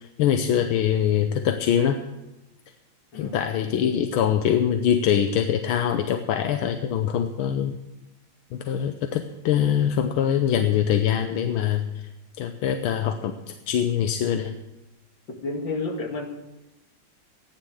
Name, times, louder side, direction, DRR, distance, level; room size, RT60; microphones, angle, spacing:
voice 1, 0.2-2.0 3.1-7.8 8.5-11.9 12.4-13.3 13.7-14.6, left 9 dB, 85° left, 7 dB, 1.6 m, -23 dB
voice 2, 15.4-16.3, left 3 dB, 65° left, 1 dB, 2.9 m, -30 dB
15.0 x 10.5 x 6.3 m, 1.0 s
omnidirectional pair, 2.2 m